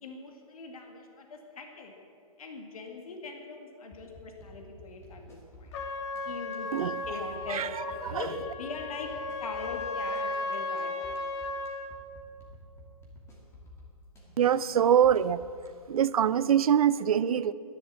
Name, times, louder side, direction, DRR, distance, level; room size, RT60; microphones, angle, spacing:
voice 1, 0.0-1.9 2.4-5.8 6.2-6.7 7.1-7.6 8.1-8.3 8.6-9.1 9.4-11.2, left 4 dB, 70° left, 3 dB, 2.1 m, -41 dB
sound 1, 3.9-15.7, left 2 dB, 15° left, 2.4 m, -51 dB
Trumpet, 5.7-11.9, left 2 dB, 50° left, 1.6 m, -35 dB
voice 2, 6.7-7.0 7.5-7.7 8.0-8.3 14.4-15.4 15.9-17.5, right 9 dB, 70° right, 17 dB, 0.6 m, -24 dB
12.5 x 11.0 x 7.5 m, 2.5 s
hypercardioid pair, 145°, 19 cm